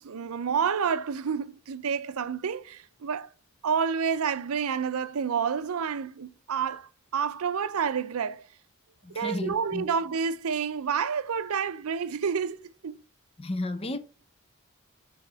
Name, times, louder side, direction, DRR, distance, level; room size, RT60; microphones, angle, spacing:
voice 1, 0.0-3.3 3.6-8.4 9.1-13.0, right 6 dB, 85° right, 0.5 m, -29 dB
voice 2, 9.0-9.9 13.4-14.0, left 2 dB, 25° left, 0.5 m, -32 dB
6.0 x 3.7 x 5.6 m
head